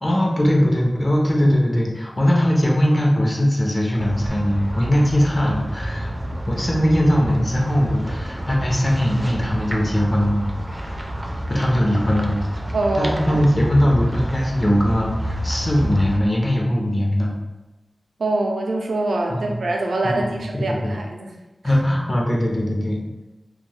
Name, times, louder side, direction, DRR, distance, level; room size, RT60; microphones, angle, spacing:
voice 1, 0.0-6.1 6.5-10.9 11.5-12.4 13.0-17.3 19.3-19.5 20.0-20.9 21.6-23.0, equal, 30° left, -2 dB, 0.7 m, -20 dB
sound 1, 4.0-16.2, equal, 25° right, 0.4 m, -29 dB
voice 2, 12.7-13.4 18.2-21.3, right 2 dB, 90° right, 1 dB, 0.4 m, -24 dB
2.4 x 2.2 x 3.2 m, 1.1 s
cardioid pair, 50°, 0 cm